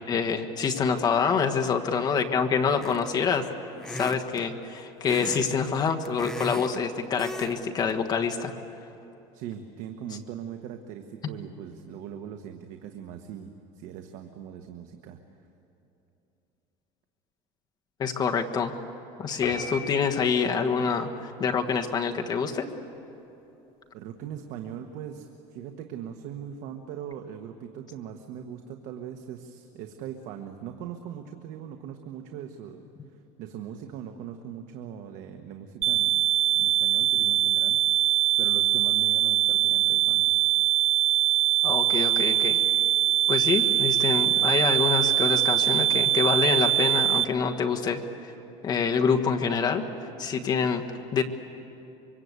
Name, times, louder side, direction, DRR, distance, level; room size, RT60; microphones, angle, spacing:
voice 1, 0.1-3.4 3.9-8.5 18.0-18.7 19.2-22.7 41.6-42.6 43.3-48.3 48.6-49.8 50.2-50.8 51.1-51.2, left 6 dB, 30° left, 4 dB, 1.4 m, -26 dB
sound 1, 2.8-3.2 3.8-4.5 5.0-5.5 5.8-6.8 7.2-7.6 7.9-8.1, left 1 dB, 5° left, 1.0 m, -36 dB
voice 2, 9.3-15.2 23.9-32.9 33.4-36.3 36.6-37.8 38.4-40.4, right 9 dB, 65° right, 5 dB, 1.4 m, -40 dB
sound 2, 19.4-20.7, left 2 dB, 75° left, 6.6 m, -37 dB
sound 3, 35.8-47.2, right 13 dB, 45° right, 0.7 m, -23 dB
25.5 x 23.5 x 8.3 m, 2.9 s
cardioid pair, 155°, 14 cm